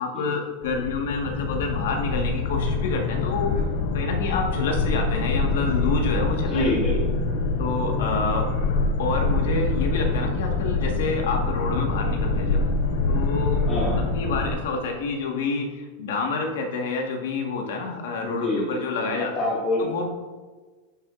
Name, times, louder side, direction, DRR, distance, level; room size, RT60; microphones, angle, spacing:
voice 1, 0.0-3.6 3.9-6.7 7.6-8.5 9.0-12.6 13.0-13.7 14.1-19.3 19.8-20.1, left 4 dB, 75° left, 2 dB, 1.5 m, -28 dB
sound 1, 0.6-14.5, left 3 dB, 55° left, 0.7 m, -25 dB
voice 2, 6.5-6.9 13.7-14.0 18.2-18.7 19.0-20.1, left 1 dB, 25° left, -9 dB, 2.5 m, -26 dB
10.5 x 7.0 x 2.5 m, 1.3 s
supercardioid pair, 175°, 0 cm